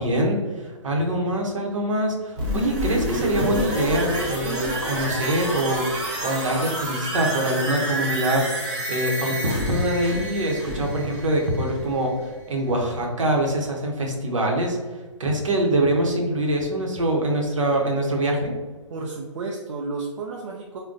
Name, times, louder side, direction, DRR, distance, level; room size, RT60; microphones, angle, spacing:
voice 1, 0.0-5.9 6.2-8.5 8.9-12.1 12.5-14.8 15.2-18.5, right 1 dB, 85° right, 1 dB, 0.8 m, -24 dB
sound 1, 2.4-12.1 12.4-12.5, right 1 dB, 20° right, 0.8 m, -28 dB
voice 2, 18.9-20.8, right 3 dB, 70° right, 0 dB, 0.4 m, -32 dB
3.7 x 2.2 x 2.5 m, 1.3 s
hypercardioid pair, 150°, 16 cm